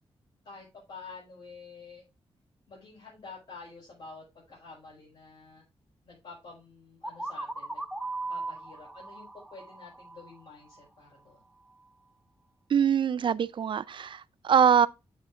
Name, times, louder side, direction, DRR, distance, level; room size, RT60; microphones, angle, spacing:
voice 1, 0.4-2.0 2.7-5.6 6.0-7.8 8.3-11.4, left 4 dB, 65° left, 5.1 m, -49 dB
sound 1, 7.0-10.8, right 2 dB, ahead, 0.8 m, -38 dB
voice 2, 12.7-14.9, right 7 dB, 55° right, 0.4 m, -23 dB
8.3 x 8.3 x 2.4 m
wide cardioid pair, 130°, 10 cm